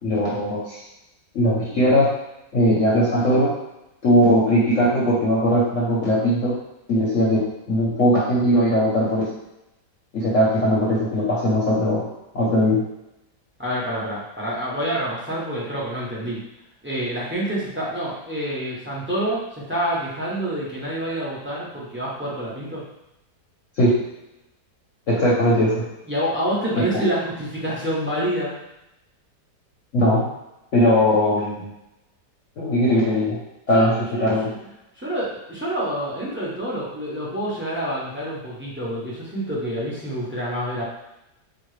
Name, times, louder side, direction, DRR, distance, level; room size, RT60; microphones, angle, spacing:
voice 1, 0.0-0.8 1.3-2.1 2.5-3.5 4.0-6.6 6.9-9.3 10.1-12.0 12.3-12.8 23.8-24.0 25.1-25.8 26.8-27.0 29.9-30.3 30.7-31.7 32.6-33.4 33.7-33.9 34.2-34.5, equal, 55° left, -7 dB, 1.1 m, -19 dB
voice 2, 13.6-16.4 16.8-22.8 26.1-28.5 33.7-34.5 35.0-40.8, equal, 10° right, -7 dB, 0.8 m, -27 dB
4.8 x 2.4 x 3.2 m, 0.88 s
omnidirectional pair, 1.8 m